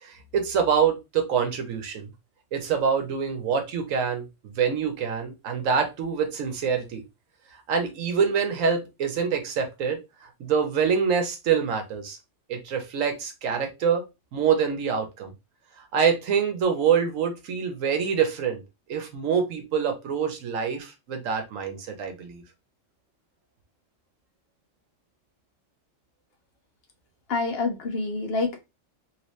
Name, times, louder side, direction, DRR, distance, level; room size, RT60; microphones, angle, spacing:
voice 1, 0.0-2.1 2.5-4.3 4.6-7.0 7.7-12.2 12.5-14.0 14.3-15.3 15.9-18.6 18.9-22.4, right 6 dB, 85° right, 6 dB, 1.2 m, -25 dB
voice 2, 27.3-28.6, left 3 dB, 55° left, 3 dB, 0.8 m, -27 dB
3.0 x 2.9 x 3.1 m, 0.24 s
omnidirectional pair, 1.3 m